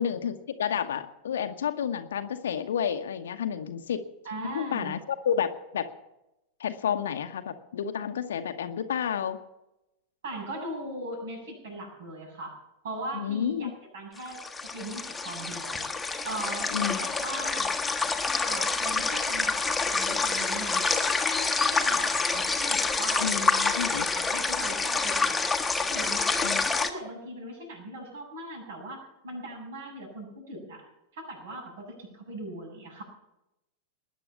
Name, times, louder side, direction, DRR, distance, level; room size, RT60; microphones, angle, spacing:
voice 1, 0.0-4.0 4.5-5.9 6.6-9.4 13.1-13.7 16.7-17.0 23.2-24.1 26.4-26.7, left 8 dB, 65° left, 7 dB, 1.0 m, -30 dB
voice 2, 4.2-4.9 10.2-12.5 12.8-14.4 14.7-15.9 16.2-17.7 18.5-23.6 23.9-25.5 25.9-26.5 26.8-33.0, right 1 dB, 60° right, 1 dB, 7.6 m, -39 dB
sound 1, 14.2-26.9, left 4 dB, 10° left, 1.4 m, -27 dB
20.5 x 9.7 x 7.2 m, 0.90 s
figure-of-eight pair, 90°, 0 cm